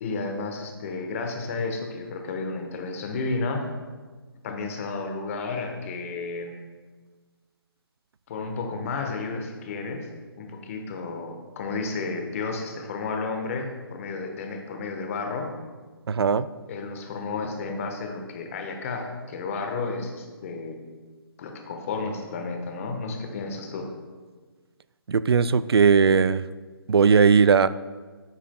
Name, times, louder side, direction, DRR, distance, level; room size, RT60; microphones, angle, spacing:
voice 1, 0.0-3.7 4.4-6.6 8.3-10.1 10.4-15.5 16.7-20.8 21.4-23.9, left 3 dB, 35° left, 3 dB, 1.1 m, -32 dB
voice 2, 16.1-16.5 25.1-26.4 26.9-27.7, right 5 dB, 85° right, 16 dB, 0.4 m, -18 dB
9.9 x 8.6 x 2.2 m, 1.4 s
hypercardioid pair, 150°, 13 cm